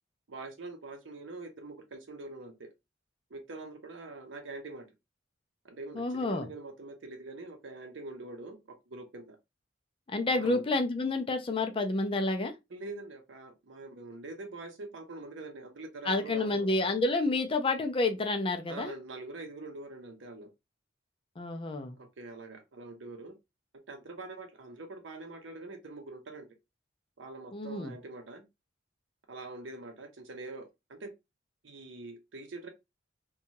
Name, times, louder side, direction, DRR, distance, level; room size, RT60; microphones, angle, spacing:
voice 1, 0.3-2.7 3.3-4.9 5.6-9.4 10.3-10.6 12.7-16.7 18.7-20.5 22.0-23.4 23.9-26.5 27.2-28.5 29.3-31.1 31.6-32.7, right 2 dB, 70° right, 0.7 m, -44 dB
voice 2, 6.0-6.5 10.1-12.5 16.0-18.9 21.4-22.0 27.5-27.9, left 2 dB, 30° left, 0.4 m, -29 dB
2.6 x 2.3 x 2.8 m
head